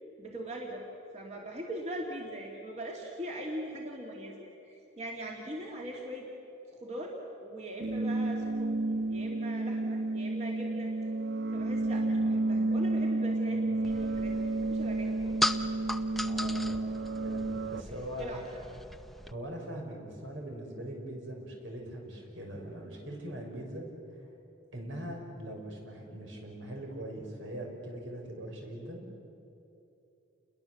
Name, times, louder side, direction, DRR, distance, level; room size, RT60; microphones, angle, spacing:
voice 1, 0.2-0.8 1.1-6.3 6.7-8.7 9.1-10.9 11.5-15.4 17.9-18.4, right 1 dB, 35° right, -1 dB, 2.5 m, -41 dB
sound 1, 7.8-17.8, right 2 dB, 50° right, 0.5 m, -31 dB
sound 2, 13.8-19.3, left 1 dB, ahead, 0.6 m, -37 dB
voice 2, 16.2-16.9 17.2-18.4 19.3-23.8 24.7-29.0, right 1 dB, 75° right, 1 dB, 5.9 m, -41 dB
29.0 x 21.5 x 7.8 m, 2.9 s
head